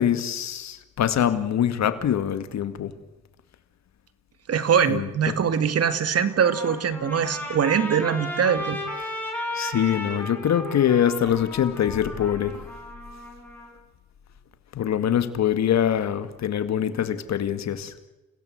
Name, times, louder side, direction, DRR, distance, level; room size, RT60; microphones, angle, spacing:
voice 1, 0.0-2.9 4.9-5.3 9.5-12.5 14.7-17.9, left 9 dB, 65° left, 10 dB, 2.1 m, -24 dB
voice 2, 4.5-8.8, right 7 dB, 55° right, 11 dB, 2.2 m, -22 dB
Trumpet, 6.2-13.7, left 1 dB, 5° left, 7.0 m, -35 dB
29.5 x 16.5 x 7.9 m, 1.1 s
cardioid pair, 90°, 30 cm